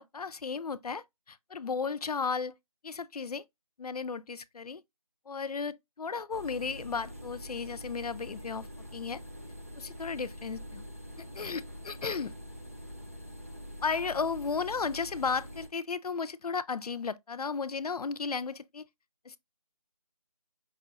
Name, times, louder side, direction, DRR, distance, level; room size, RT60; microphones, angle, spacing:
voice 1, 0.0-2.5 2.8-3.4 3.8-4.8 5.3-9.2 9.8-10.8 11.2-12.3 13.8-18.9 19.3-19.4, left 5 dB, 90° left, 0.5 m, -34 dB
sound 1, 6.3-15.7, equal, 25° right, 0.5 m, -45 dB
5.4 x 2.4 x 2.9 m
figure-of-eight pair, 175°, 19 cm